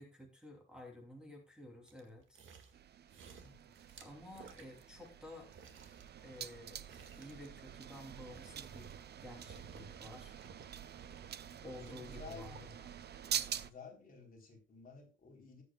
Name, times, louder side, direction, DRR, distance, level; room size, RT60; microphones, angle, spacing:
voice 1, 0.0-2.4 4.0-5.5 6.2-6.8 7.2-8.9 9.1-10.4 11.6-12.7, left 1 dB, 5° right, 1 dB, 3.0 m, -52 dB
sound 1, 1.9-2.8 3.1-5.2 5.5-9.2 9.5-10.0 10.3-12.7 13.2-13.3, right 5 dB, 70° right, 2.0 m, -57 dB
sound 2, 2.7-13.7, right 9 dB, 50° right, 0.7 m, -46 dB
voice 2, 3.4-3.7 11.6-12.7 13.5-15.6, left 5 dB, 40° left, 0 dB, 4.0 m, -54 dB
19.5 x 8.2 x 2.4 m, 0.32 s
wide cardioid pair, 150°, 21 cm